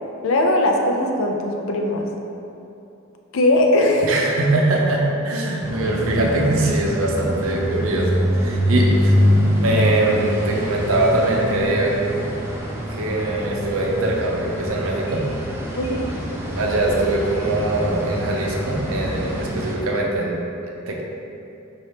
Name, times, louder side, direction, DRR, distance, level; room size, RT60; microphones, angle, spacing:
voice 1, 0.2-2.1 3.3-4.1 15.8-16.0, left 1 dB, 70° left, 2 dB, 0.4 m, -19 dB
voice 2, 4.0-9.2 9.6-12.0 12.9-15.2 16.6-20.4 20.9-21.0, right 2 dB, 75° right, -1 dB, 0.6 m, -22 dB
sound 1, 5.6-19.7, equal, 10° right, 0.4 m, -24 dB
4.6 x 2.8 x 3.2 m, 2.8 s
head